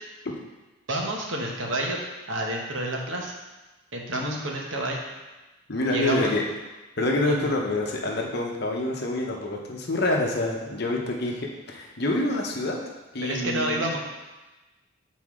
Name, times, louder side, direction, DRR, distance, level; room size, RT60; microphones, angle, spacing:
voice 1, 0.9-2.0 2.3-3.3 3.9-5.0 5.9-6.3 7.2-7.5 13.2-14.0, right 1 dB, 65° right, 0 dB, 1.1 m, -29 dB
voice 2, 4.1-4.5 5.7-6.4 7.0-12.8 13.1-13.8, left 2 dB, 50° left, 0 dB, 0.9 m, -27 dB
8.0 x 4.2 x 3.7 m, 1.1 s
head